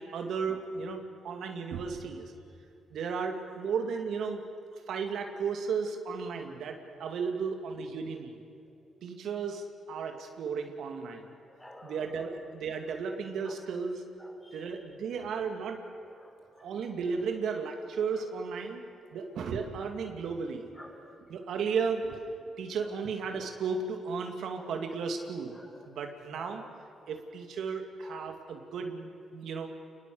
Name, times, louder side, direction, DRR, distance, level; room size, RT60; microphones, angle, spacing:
voice 1, 0.0-2.3 2.9-4.4 4.9-8.3 9.0-11.2 11.8-14.0 14.5-15.8 16.6-18.8 19.1-20.7 21.3-25.6 25.9-26.6 27.1-29.7, right 5 dB, 75° right, 4 dB, 2.4 m, -34 dB
voice 2, 11.5-12.1 14.2-14.7 16.2-16.9 20.8-21.1 24.5-24.7 25.5-25.6 26.4-26.6 28.0-28.1, left 1 dB, 15° left, 0 dB, 6.5 m, -51 dB
28.5 x 21.0 x 7.9 m, 2.3 s
cardioid pair, 85°, 0 cm